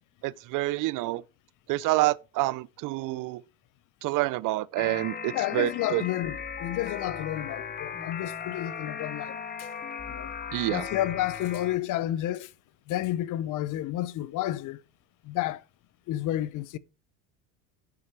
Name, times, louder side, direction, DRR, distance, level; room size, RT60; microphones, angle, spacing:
voice 1, 0.2-1.2 1.7-3.4 4.0-6.0 10.5-10.9, right 18 dB, 55° right, 0.6 m, -28 dB
sound 1, 4.8-11.8, left 6 dB, 25° left, 1.2 m, -37 dB
voice 2, 5.3-9.7 10.1-10.3 10.7-12.5 12.9-14.8 15.2-15.6 16.1-16.8, left 14 dB, 55° left, 0.8 m, -31 dB
8.7 x 7.8 x 4.6 m
supercardioid pair, 110°, 38 cm